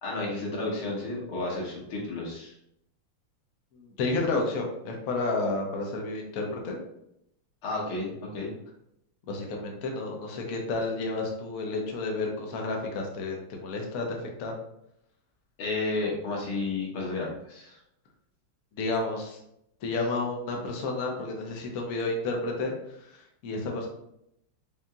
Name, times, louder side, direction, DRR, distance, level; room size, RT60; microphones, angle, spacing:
voice 1, 0.0-2.5 7.6-8.5 15.6-17.8, left 2 dB, 85° left, -3 dB, 2.0 m, -32 dB
voice 2, 3.7-6.8 9.3-14.5 18.7-19.4 19.8-23.1 23.4-23.9, left 3 dB, 65° left, 1 dB, 0.9 m, -31 dB
5.2 x 2.7 x 2.3 m, 0.78 s
omnidirectional pair, 2.3 m